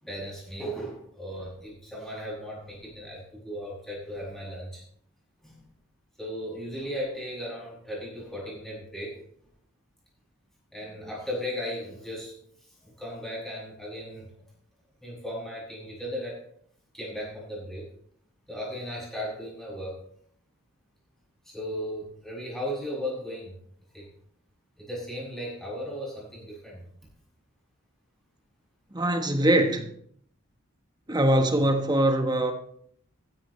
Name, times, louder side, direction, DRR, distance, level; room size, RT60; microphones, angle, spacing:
voice 1, 0.0-4.8 5.4-5.6 6.2-9.2 10.7-12.3 12.8-14.3 15.0-16.4 16.9-17.9 18.5-20.0 21.5-23.5 23.9-24.1 24.8-26.8, equal, ahead, -5 dB, 7.2 m, -36 dB
voice 2, 28.9-29.9 31.1-32.5, right 1 dB, 20° right, 5 dB, 1.4 m, -22 dB
15.0 x 14.0 x 3.3 m, 0.65 s
head